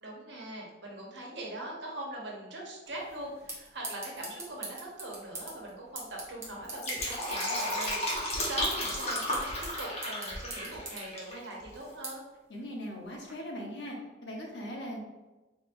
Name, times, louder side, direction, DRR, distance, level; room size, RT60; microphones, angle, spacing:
voice 1, 0.0-12.2, right 1 dB, 80° right, -2 dB, 1.0 m, -41 dB
sound 1, 2.9-13.3, right 2 dB, 15° right, 0.8 m, -45 dB
Fill (with liquid), 6.6-11.4 11.6-11.7, left 1 dB, 35° left, 0.9 m, -33 dB
voice 2, 12.5-14.0 14.2-15.0, equal, 75° left, -1 dB, 0.9 m, -39 dB
4.0 x 3.1 x 2.6 m, 1.1 s
head